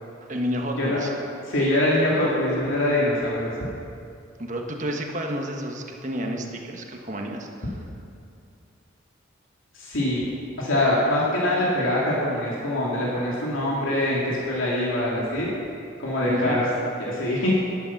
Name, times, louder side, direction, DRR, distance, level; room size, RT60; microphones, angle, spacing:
voice 1, 0.2-1.1 4.4-7.7 16.3-16.6, equal, 35° right, 2 dB, 1.3 m, -30 dB
voice 2, 1.5-3.5 9.7-10.2 10.6-15.5 16.0-16.6 17.0-17.5, left 1 dB, 75° left, -6 dB, 2.6 m, -23 dB
12.0 x 11.5 x 5.9 m, 2.5 s
head